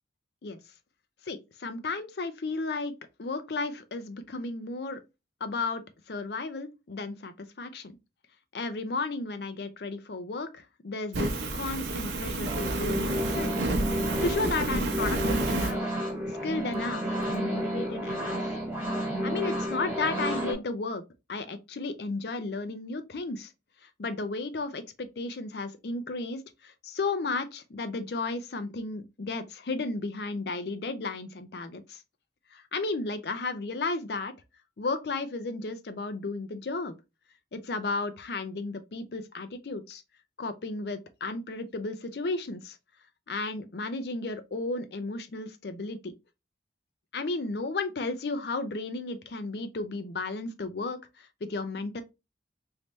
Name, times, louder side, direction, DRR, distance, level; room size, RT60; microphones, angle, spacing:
voice 1, 1.3-2.9 3.2-5.0 5.4-5.8 6.1-8.0 8.5-13.7 14.2-15.8 16.4-18.6 19.2-21.0 21.3-23.5 24.0-32.0 32.5-34.3 34.8-36.9 37.5-40.0 40.4-42.8 43.3-46.1 47.1-52.0, left 3 dB, 60° left, 0.5 m, -34 dB
Fire, 11.1-15.7, right 2 dB, 80° right, 0.7 m, -30 dB
sound 1, 12.4-20.5, equal, 10° right, 1.0 m, -31 dB
3.3 x 2.7 x 3.0 m
head